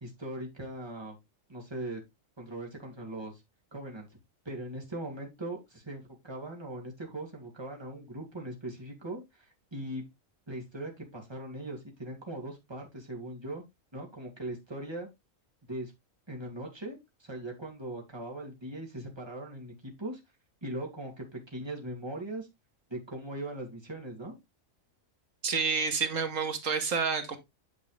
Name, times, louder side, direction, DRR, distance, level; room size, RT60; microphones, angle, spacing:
voice 1, 0.0-1.2 1.5-2.0 2.4-3.4 3.7-4.1 4.4-10.0 10.5-13.6 13.9-15.1 15.7-15.9 16.3-20.2 20.6-22.5 22.9-24.3, right 1 dB, 20° right, 2.6 m, -40 dB
voice 2, 25.4-27.4, right 5 dB, 70° right, 1.7 m, -29 dB
9.4 x 5.3 x 3.3 m
omnidirectional pair, 1.4 m